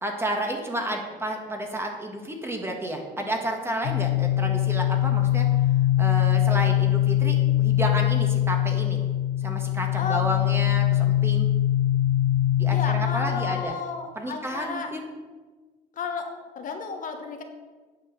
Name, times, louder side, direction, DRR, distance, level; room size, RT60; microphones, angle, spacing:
voice 1, 0.0-5.5 6.0-9.0 9.4-11.5 12.6-13.7 14.1-15.0, right 1 dB, 15° right, 2 dB, 1.5 m, -31 dB
sound 1, 3.8-13.6, left 13 dB, 90° left, 0.7 m, -22 dB
voice 2, 9.9-10.3 12.7-14.9 16.0-16.3 16.6-17.4, left 5 dB, 55° left, 4 dB, 1.2 m, -32 dB
9.4 x 4.7 x 7.1 m, 1.4 s
cardioid pair, 110°, 17 cm